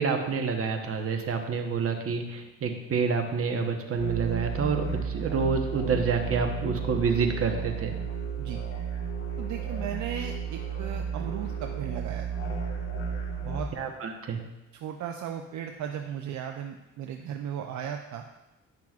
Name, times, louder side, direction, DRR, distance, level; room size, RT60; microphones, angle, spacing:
voice 1, 0.0-7.9 13.8-14.4, right 5 dB, 50° right, 4 dB, 1.0 m, -28 dB
sound 1, 4.0-13.6, right 6 dB, 50° left, 2.3 m, -33 dB
voice 2, 9.4-12.3 13.4-13.7 14.8-18.2, right 9 dB, 70° right, 3 dB, 0.6 m, -36 dB
10.5 x 5.9 x 2.4 m, 1.0 s
cardioid pair, 90°, 30 cm